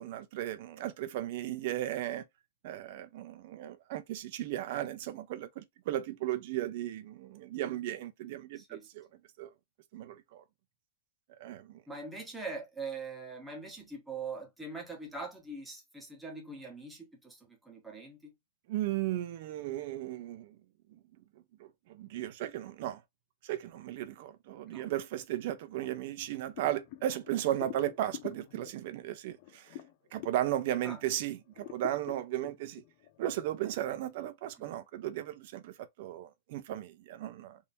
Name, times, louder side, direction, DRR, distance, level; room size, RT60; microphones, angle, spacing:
voice 1, 0.0-2.2 2.6-9.1 9.4-9.5 9.9-10.4 11.4-11.8 18.7-20.6 20.9-21.0 21.6-23.0 23.4-29.8 30.1-32.8 33.2-37.6, right 13 dB, 50° right, 0.6 m, -36 dB
voice 2, 8.6-8.9 11.9-18.3 24.7-24.9 30.8-31.0 34.6-34.7, right 3 dB, 5° right, 1.1 m, -42 dB
sound 1, 26.5-31.2 31.5-33.3, left 12 dB, 40° left, 0.4 m, -47 dB
3.5 x 2.7 x 2.7 m
supercardioid pair, 160°, 0 cm